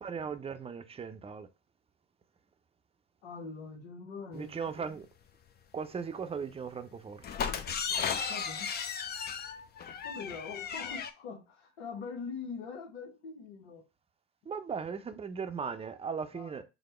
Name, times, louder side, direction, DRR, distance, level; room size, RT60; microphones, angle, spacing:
voice 1, 0.0-1.5 4.3-5.1 5.7-7.2 14.5-16.6, right 6 dB, 20° right, 0.6 m, -38 dB
voice 2, 3.2-5.0 8.3-8.7 10.0-13.9 16.3-16.6, left 5 dB, 80° left, 0.9 m, -43 dB
sound 1, 7.2-11.1, left 6 dB, 30° left, 0.6 m, -35 dB
5.1 x 2.1 x 4.3 m
hypercardioid pair, 75°, 32 cm